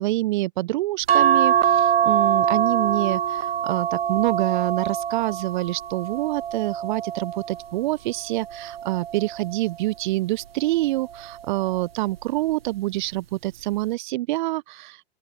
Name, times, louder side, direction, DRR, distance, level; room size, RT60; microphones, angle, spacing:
voice 1, 0.0-15.0, right 17 dB, 50° right, 0.9 m, -26 dB
sound 1, 1.1-7.7 8.3-9.7 11.0-11.4 11.7-11.8, right 9 dB, 70° right, 1.2 m, -24 dB
open air
figure-of-eight pair, 95°, 31 cm